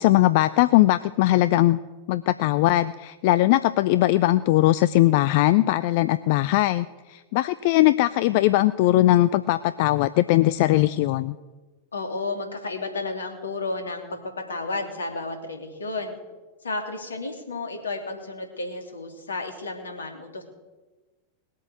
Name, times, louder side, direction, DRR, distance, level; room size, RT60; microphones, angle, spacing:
voice 1, 0.0-1.8 2.1-11.4, left 16 dB, 50° left, 15 dB, 0.5 m, -20 dB
voice 2, 11.9-16.2 16.6-20.4, left 3 dB, 70° left, 4 dB, 2.9 m, -32 dB
20.5 x 8.4 x 7.9 m, 1.2 s
figure-of-eight pair, 90°, 0 cm